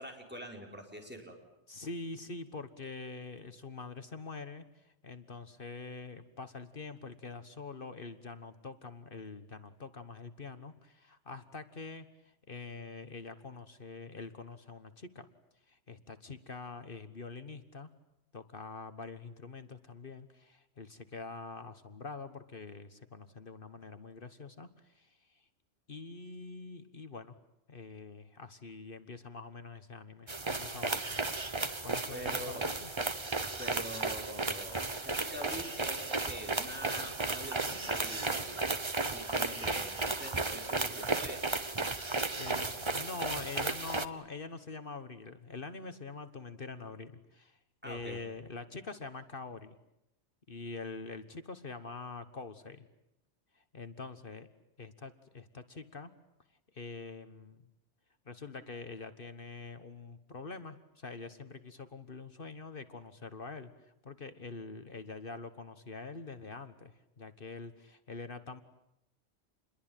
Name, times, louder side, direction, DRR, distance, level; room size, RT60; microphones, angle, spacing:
voice 1, 0.0-1.4 32.1-32.7 33.6-38.6 39.1-41.4 47.8-48.2, equal, 10° right, 1 dB, 5.3 m, -44 dB
voice 2, 1.7-12.1 12.5-15.3 15.7-17.9 18.3-25.4 25.9-27.3 27.7-31.2 31.8-32.9 42.4-49.7 50.5-52.9 53.5-54.5 54.8-56.1 56.7-57.6 58.2-63.7 64.0-68.6, left 4 dB, 50° left, 10 dB, 1.5 m, -45 dB
sound 1, 30.3-44.0, right 3 dB, 25° right, 1.2 m, -34 dB
28.5 x 22.0 x 9.0 m, 0.86 s
omnidirectional pair, 1.2 m